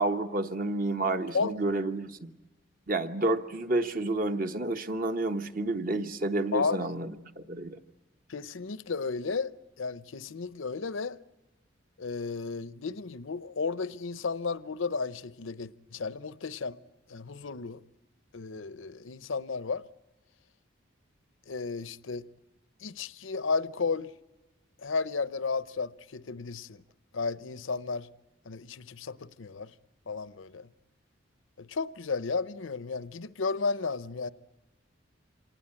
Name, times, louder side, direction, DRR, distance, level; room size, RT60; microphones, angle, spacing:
voice 1, 0.0-2.3 2.9-7.8, right 2 dB, 45° right, 1.1 m, -30 dB
voice 2, 6.5-6.9 8.3-9.5 9.8-11.2 12.0-16.8 17.1-17.8 18.3-19.8 21.5-22.3 22.8-24.1 24.8-26.8 27.1-28.1 28.5-29.7 30.1-30.7 31.6-34.3, left 4 dB, 75° left, 0.7 m, -33 dB
26.0 x 19.0 x 8.7 m
head